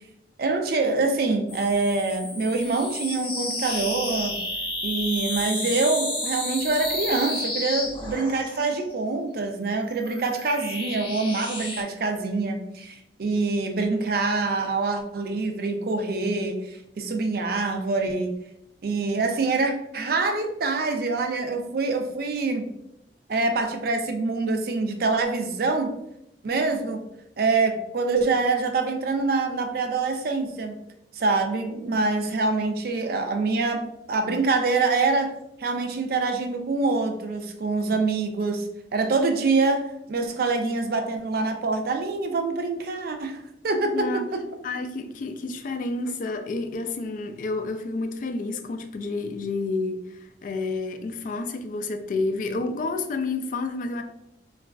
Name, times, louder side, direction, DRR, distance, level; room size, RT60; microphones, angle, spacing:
voice 1, 0.4-4.4 4.8-18.3 18.8-22.7 23.3-25.9 26.4-27.0 27.4-30.8 31.1-35.3 35.6-38.7 38.9-44.4, right 3 dB, 55° right, 0.4 m, -25 dB
sound 1, 1.5-8.8 9.7-11.8, left 1 dB, 30° left, 0.8 m, -32 dB
voice 2, 43.9-44.3 44.6-54.0, left 3 dB, 50° left, 0.3 m, -30 dB
4.0 x 2.3 x 2.3 m
head